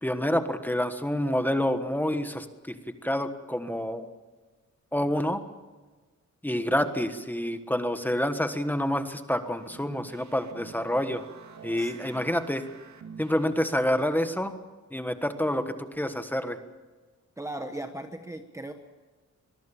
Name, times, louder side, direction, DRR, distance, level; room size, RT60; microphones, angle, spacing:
voice 1, 0.0-2.7 3.0-4.1 4.9-5.4 6.4-11.2 11.6-12.6 13.2-14.6 14.9-16.6, equal, 5° left, 8 dB, 1.3 m, -28 dB
sound 1, 9.3-13.8, right 6 dB, 65° right, 2.4 m, -48 dB
voice 2, 11.8-12.2 17.4-18.7, right 1 dB, 10° right, 6 dB, 1.1 m, -38 dB
23.5 x 21.5 x 7.2 m, 1.3 s
wide cardioid pair, 175°, 30 cm